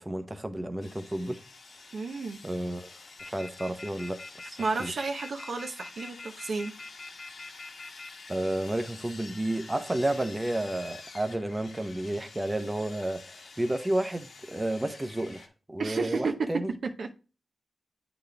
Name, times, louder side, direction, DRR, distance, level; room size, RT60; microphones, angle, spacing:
voice 1, 0.0-1.4 2.4-2.9 3.2-4.9 8.3-16.7, right 1 dB, 20° right, 0.8 m, -31 dB
Sawing, 0.8-15.5, left 3 dB, 70° left, 1.2 m, -49 dB
voice 2, 1.9-2.4 4.6-6.7 15.8-17.1, right 4 dB, 70° right, 0.8 m, -32 dB
sound 1, 3.2-8.1, left 3 dB, 55° left, 1.7 m, -43 dB
8.2 x 4.1 x 3.4 m
cardioid pair, 55°, 0 cm